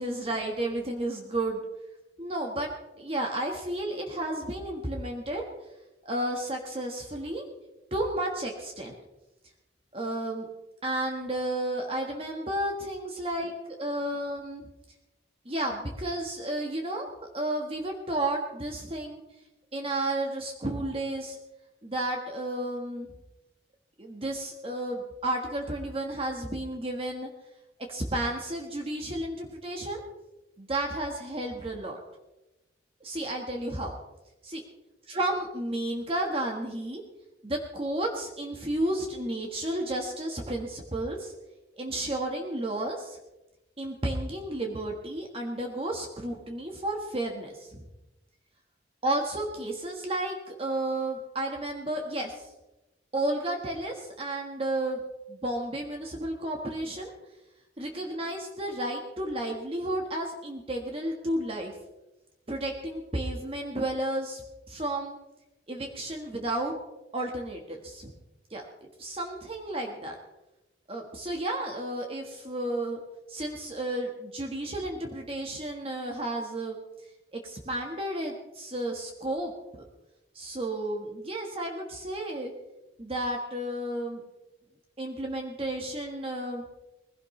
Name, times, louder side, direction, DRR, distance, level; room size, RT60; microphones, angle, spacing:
voice 1, 0.0-1.6 2.2-2.7 3.0-5.4 6.0-7.4 7.9-8.9 9.9-10.5 10.8-13.5 13.8-14.7 15.4-17.1 17.3-19.2 19.7-21.4 21.8-23.1 24.0-27.3 27.9-30.0 30.6-32.0 33.0-33.9 34.4-34.6 35.1-37.0 37.4-41.3 41.8-43.2 43.8-47.8 49.0-52.5 53.1-55.0 55.3-57.1 57.8-61.7 62.5-64.4 64.7-65.2 65.7-66.8 67.1-68.1 68.5-68.7 69.0-70.1 70.9-73.0 73.3-76.8 77.3-79.5 80.3-82.5 83.0-84.2 85.0-86.6, right 1 dB, 30° right, 1 dB, 1.5 m, -32 dB
20.5 x 16.5 x 3.3 m, 1.0 s
head